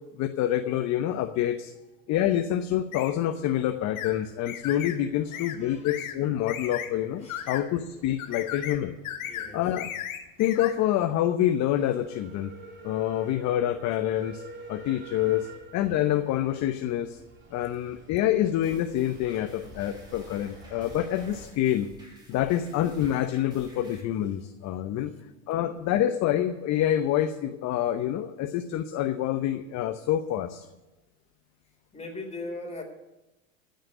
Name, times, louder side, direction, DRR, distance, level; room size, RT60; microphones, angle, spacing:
voice 1, 0.2-1.7 2.1-9.0 9.5-9.9 10.4-12.5 12.8-14.4 14.7-17.2 17.5-21.9 22.3-25.1 25.5-30.7, left 12 dB, 40° left, 8 dB, 0.9 m, -27 dB
sound 1, 2.9-3.1 4.0-4.1 4.5-5.0 5.3-5.6 5.8-6.2 6.5-6.9 7.3-7.6 8.2-8.8 9.0-9.5 9.8-10.7, left 11 dB, 70° left, 1.9 m, -35 dB
sound 2, 3.3-21.5, right 2 dB, 25° right, 2.8 m, -50 dB
voice 2, 5.3-5.9 7.2-7.6 8.3-8.5 9.2-9.6 15.3-15.4 17.6-17.8 19.3-19.4 24.9-25.7 31.9-32.8, left 2 dB, 15° left, 1 dB, 3.8 m, -42 dB
sound 3, 18.6-24.0, equal, 10° right, 4.7 m, -52 dB
14.0 x 6.6 x 9.3 m, 1.0 s
hypercardioid pair, 100°, 42 cm